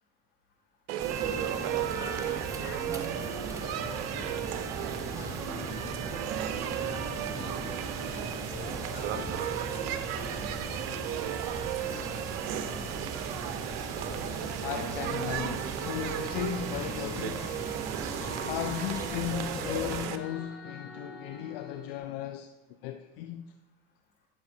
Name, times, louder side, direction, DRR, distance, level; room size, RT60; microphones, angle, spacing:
sound 1, 0.9-20.2, right 10 dB, 60° right, 0.7 m, -35 dB
sound 2, 1.0-20.1, right 2 dB, 10° right, 0.9 m, -40 dB
voice 1, 1.9-4.3 4.8-6.4 6.8-7.8 8.1-9.4 9.7-10.9 11.6-11.9 12.4-13.2, left 3 dB, 40° left, 2.7 m, -48 dB
voice 2, 14.6-17.6 18.4-22.5 22.8-23.5, left 11 dB, 70° left, 0.5 m, -36 dB
sound 3, 16.0-22.0, left 2 dB, 90° left, 1.6 m, -45 dB
11.5 x 6.0 x 2.7 m
hypercardioid pair, 85°, 30 cm